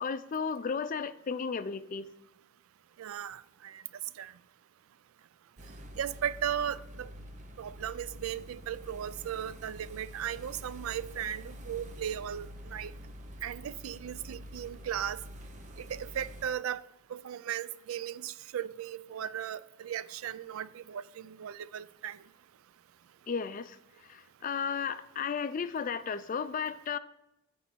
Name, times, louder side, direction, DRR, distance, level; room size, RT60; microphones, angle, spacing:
voice 1, 0.0-2.1 23.3-23.7 24.4-27.0, left 6 dB, 40° left, 0.4 m, -33 dB
voice 2, 3.0-3.8 4.2-4.3 6.0-7.1 7.6-12.9 13.4-15.2 15.8-16.8 17.1-22.2, right 9 dB, 85° right, 0.3 m, -37 dB
sound 1, 5.6-16.5, equal, 35° right, 0.7 m, -47 dB
9.2 x 3.4 x 6.1 m
head